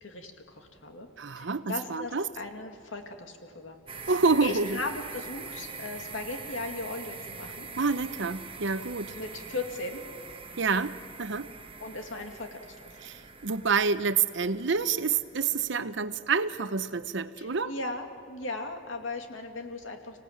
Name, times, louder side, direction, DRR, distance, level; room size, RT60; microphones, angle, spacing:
voice 1, 0.0-1.1 1.4-4.1 4.4-7.7 9.1-10.0 11.8-13.0 17.4-20.2, left 2 dB, 85° left, 4 dB, 2.4 m, -38 dB
voice 2, 1.2-2.3 4.1-4.8 7.8-9.2 10.6-11.5 13.0-17.7, right 4 dB, 70° right, 12 dB, 0.9 m, -28 dB
sound 1, 3.9-15.8, right 4 dB, 30° right, 1.2 m, -44 dB
26.0 x 17.5 x 8.8 m, 2.5 s
head